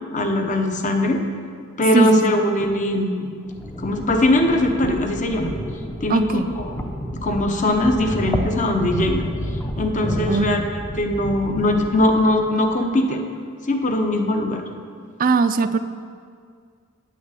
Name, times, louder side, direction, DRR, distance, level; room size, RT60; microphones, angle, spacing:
voice 1, 0.1-1.2 1.8-3.4 3.8-5.5 6.0-6.8 7.2-9.2 9.8-10.6 10.9-13.2 13.7-14.6, left 1 dB, 35° left, 4 dB, 0.9 m, -21 dB
voice 2, 1.9-2.4 6.1-6.5 10.3-10.6 15.2-15.8, right 4 dB, 40° right, 12 dB, 0.4 m, -20 dB
sound 1, 3.4-12.7, equal, 10° left, 0.6 m, -30 dB
9.1 x 6.2 x 8.2 m, 2.1 s
head